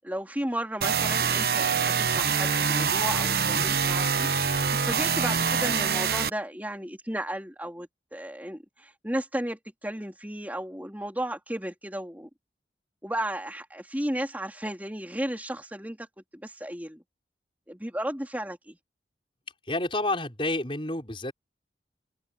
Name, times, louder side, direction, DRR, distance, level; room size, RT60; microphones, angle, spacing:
voice 1, 0.0-12.3 13.0-16.1 16.3-17.0 17.7-18.8, right 1 dB, 10° right, 3.8 m, -34 dB
sound 1, 0.8-6.3, right 6 dB, 60° right, 1.0 m, -25 dB
voice 2, 19.7-21.3, left 2 dB, 30° left, 6.0 m, -29 dB
head